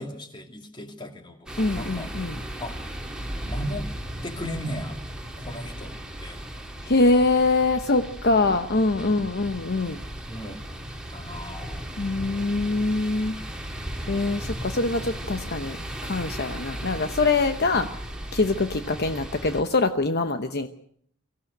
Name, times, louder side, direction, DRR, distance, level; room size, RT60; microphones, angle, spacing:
voice 1, 0.0-1.5 1.7-2.1 2.6-2.8 3.4-3.9 4.2-5.0 5.4-6.4 8.3-8.6 9.0-9.4 10.3-10.6 11.1-11.9 17.6-17.8, equal, 20° left, 5 dB, 2.6 m, -36 dB
sound 1, 1.5-19.6, right 1 dB, 5° right, 2.6 m, -36 dB
voice 2, 1.6-2.4 6.8-10.0 12.0-13.3 14.1-15.8 16.0-17.9 18.3-20.7, left 3 dB, 50° left, 8 dB, 1.0 m, -24 dB
24.5 x 16.0 x 8.0 m, 0.65 s
head